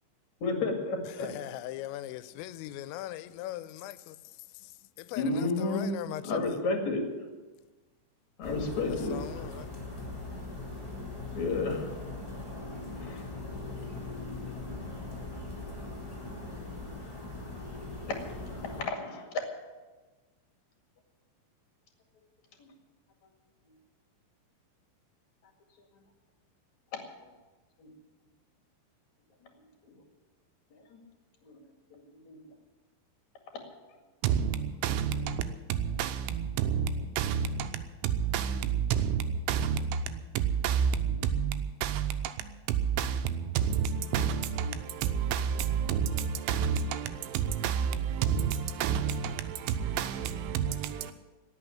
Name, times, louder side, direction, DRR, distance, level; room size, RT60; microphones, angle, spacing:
voice 1, 0.4-1.3 5.1-5.9 6.2-7.0 8.4-9.4 11.3-11.9 13.0-13.3 18.4-19.3 27.8-27.9 30.9-31.0 31.4-31.5 32.2-32.4 33.5-33.6 38.5-38.6, left 3 dB, 50° left, 2.5 m, -31 dB
voice 2, 1.4-3.9 5.1-5.2 5.6-6.2, left 14 dB, 85° left, 3.2 m, -39 dB
sound 1, 8.4-18.8, left 2 dB, 10° left, 1.6 m, -40 dB
voice 3, 34.2-51.1, right 7 dB, 80° right, 3.0 m, -30 dB
18.0 x 6.6 x 10.0 m
omnidirectional pair, 5.9 m